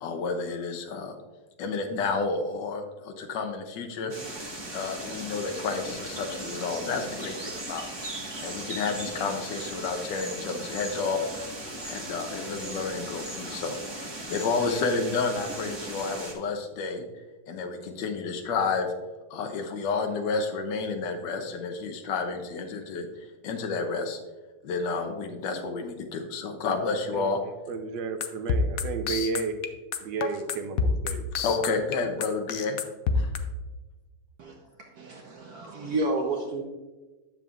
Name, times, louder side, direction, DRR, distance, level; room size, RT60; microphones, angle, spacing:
voice 1, 0.0-1.2 1.6-4.1 4.7-7.9 8.4-11.3 11.8-17.0 17.5-18.9 19.3-23.1 23.4-24.2 24.6-27.4 31.4-32.8 33.1-33.3, left 4 dB, 80° left, 5 dB, 1.4 m, -30 dB
sound 1, 4.1-16.3, right 1 dB, 15° right, 1.1 m, -38 dB
voice 2, 27.1-29.6 30.0-31.2, right 5 dB, 85° right, 7 dB, 1.5 m, -33 dB
sound 2, 28.2-33.4, left 5 dB, 65° left, 0.9 m, -26 dB
voice 3, 34.4-36.6, right 2 dB, 60° right, 0 dB, 1.3 m, -31 dB
10.5 x 7.1 x 2.4 m, 1.2 s
omnidirectional pair, 1.9 m